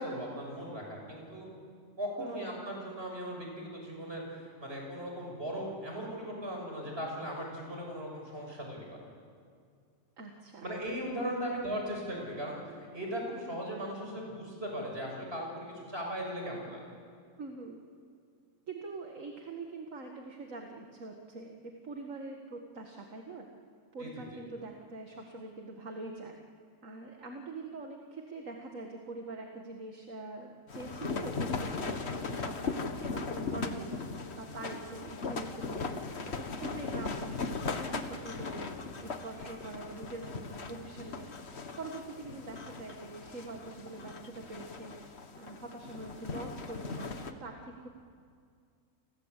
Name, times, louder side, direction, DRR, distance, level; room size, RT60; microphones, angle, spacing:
voice 1, 0.0-1.5 2.0-9.1 10.6-12.6 12.9-16.9 24.0-24.4 38.2-38.3, equal, 45° right, 0 dB, 6.9 m, -38 dB
voice 2, 2.2-2.5 10.2-10.7 17.4-17.8 18.7-23.5 23.9-26.4 26.8-35.9 36.2-38.7 39.0-47.9, right 3 dB, 70° right, 2 dB, 2.2 m, -44 dB
sound 1, 30.7-47.3, left 4 dB, 50° left, 1.6 m, -38 dB
30.0 x 21.5 x 8.3 m, 2.2 s
omnidirectional pair, 1.4 m